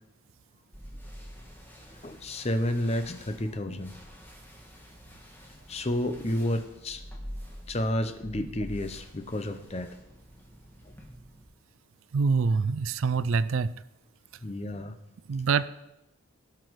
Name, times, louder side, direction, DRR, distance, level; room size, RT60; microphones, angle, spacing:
sound 1, 0.7-11.4, equal, 10° left, 1.5 m, -47 dB
voice 1, 2.0-3.9 5.7-7.0 7.7-9.9 14.4-14.9, left 1 dB, 30° left, 9 dB, 0.7 m, -30 dB
voice 2, 12.1-13.7 15.3-15.7, right 5 dB, 75° right, 15 dB, 0.4 m, -25 dB
17.5 x 5.9 x 4.7 m, 0.92 s
head